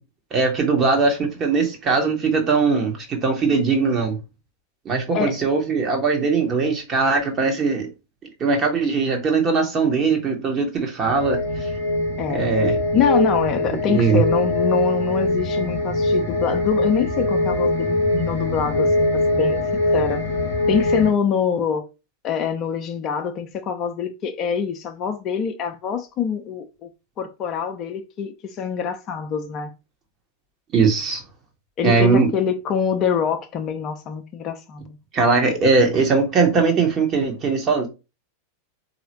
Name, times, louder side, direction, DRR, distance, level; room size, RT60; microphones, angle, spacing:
voice 1, 0.3-4.2 4.8-7.9 8.4-11.7 12.3-12.8 13.9-14.2 30.7-31.2 31.8-32.3 35.1-37.9, right 4 dB, 30° right, 1.1 m, -20 dB
sound 1, 11.0-21.1, left 1 dB, 85° right, 1.5 m, -22 dB
voice 2, 12.9-19.6 19.9-20.3 20.7-21.9 22.2-26.9 27.2-29.7 31.8-35.0, left 7 dB, 35° left, 0.5 m, -25 dB
4.0 x 2.7 x 2.9 m
figure-of-eight pair, 90°, 0 cm